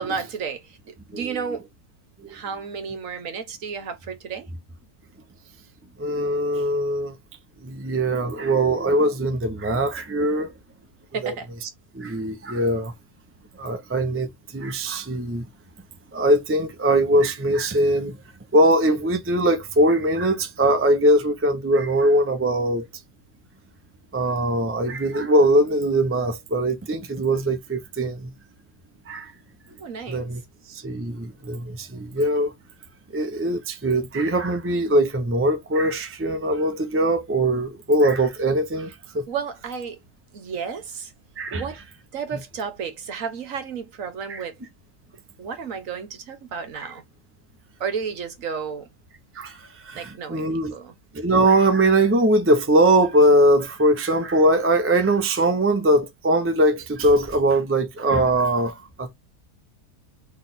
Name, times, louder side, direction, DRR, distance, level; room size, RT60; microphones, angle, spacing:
voice 1, 0.0-1.7 2.3-4.5 11.1-11.5 29.8-30.2 39.3-40.0 40.3-41.1 41.5-41.8 42.1-44.5 45.4-47.0 47.8-48.9 49.9-50.9, right 6 dB, 60° right, 1.3 m, -32 dB
voice 2, 6.0-7.1 7.6-10.5 11.2-11.3 11.6-11.7 11.9-12.9 13.6-15.4 16.1-18.2 18.5-22.9 24.1-28.3 29.1-29.3 30.1-30.4 30.7-32.5 33.1-39.2 41.4-41.7 44.3-44.4 46.8-46.9 49.3-50.7 51.1-59.1, right 1 dB, 20° right, 0.3 m, -21 dB
4.0 x 3.2 x 3.9 m
omnidirectional pair, 1.6 m